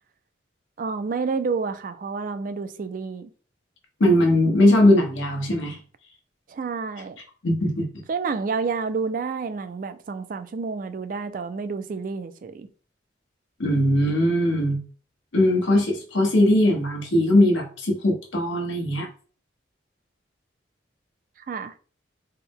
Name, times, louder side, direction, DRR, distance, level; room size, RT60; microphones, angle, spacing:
voice 1, 0.8-3.3 6.5-7.2 8.1-12.7 21.4-21.7, right 4 dB, 45° right, 0.3 m, -29 dB
voice 2, 4.0-5.8 7.4-8.0 13.6-14.8 15.3-19.1, left 1 dB, 85° left, 1.1 m, -20 dB
4.3 x 2.1 x 3.5 m
head